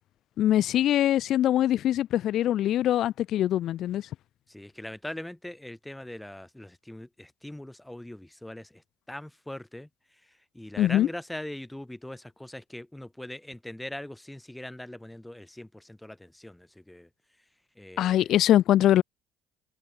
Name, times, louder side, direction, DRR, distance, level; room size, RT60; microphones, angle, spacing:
voice 1, 0.4-4.1 10.8-11.1 18.0-19.0, left 12 dB, 55° left, 0.7 m, -23 dB
voice 2, 4.5-8.8 9.1-9.9 10.5-17.1 17.8-18.3, left 1 dB, 5° left, 3.7 m, -41 dB
hypercardioid pair, 60°, 0 cm